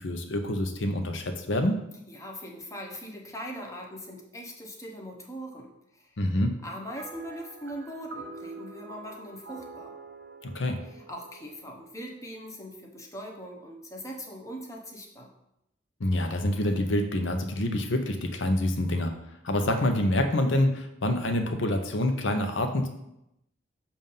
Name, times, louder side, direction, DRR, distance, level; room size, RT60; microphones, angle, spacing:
voice 1, 0.0-1.8 6.2-6.5 10.4-10.8 16.0-19.1 19.4-22.9, left 1 dB, 70° left, 5 dB, 0.7 m, -26 dB
voice 2, 2.1-6.2 6.6-9.9 10.8-15.3, equal, 15° left, 0 dB, 0.8 m, -41 dB
sound 1, 6.9-12.5, right 3 dB, 60° right, 0.6 m, -46 dB
7.1 x 2.6 x 5.4 m, 0.84 s
head